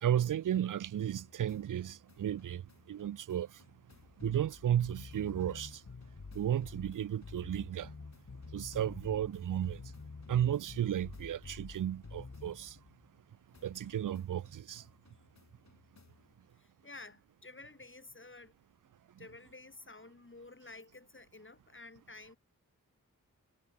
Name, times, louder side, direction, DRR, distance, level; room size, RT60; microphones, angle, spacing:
voice 1, 0.0-2.6 2.9-3.5 4.2-5.8 6.3-7.9 8.5-9.8 10.3-12.8 13.6-14.8, right 10 dB, 65° right, 0.5 m, -33 dB
sound 1, 1.0-13.2 13.5-16.3, left 4 dB, 50° left, 5.1 m, -51 dB
voice 2, 16.6-18.5 19.2-22.4, left 3 dB, 35° left, 5.0 m, -52 dB
wide cardioid pair, 65°, 34 cm